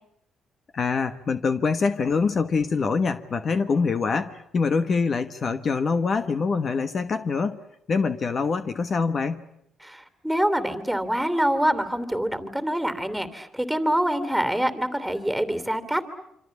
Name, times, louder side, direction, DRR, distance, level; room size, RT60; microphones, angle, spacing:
voice 1, 0.7-7.6 7.9-9.5, left 4 dB, 45° left, 10 dB, 1.3 m, -24 dB
voice 2, 9.8-16.0, right 1 dB, ahead, 11 dB, 3.0 m, -25 dB
26.5 x 26.0 x 8.4 m, 0.76 s
cardioid pair, 90°, 0 cm